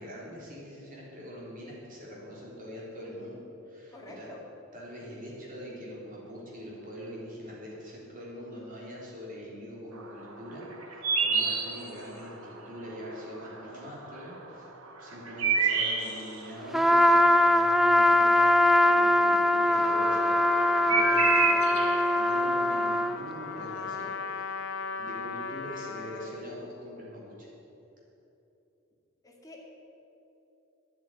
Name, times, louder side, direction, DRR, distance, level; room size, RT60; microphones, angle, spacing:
voice 1, 0.0-4.3 4.7-14.7 15.0-21.8 22.1-24.5 25.0-27.5, equal, 40° right, -5 dB, 3.4 m, -43 dB
voice 2, 3.9-4.4 29.2-29.6, left 2 dB, 15° left, -2 dB, 2.1 m, -47 dB
sound 1, 10.0-12.6 13.0-13.7 14.0-19.1 19.4-23.7, right 5 dB, 85° right, 1.5 m, -29 dB
Trumpet, 16.7-23.2, left 1 dB, ahead, 0.3 m, -22 dB
Trumpet 2, 19.8-26.4, left 5 dB, 60° left, 0.8 m, -37 dB
9.9 x 8.2 x 9.7 m, 2.9 s
head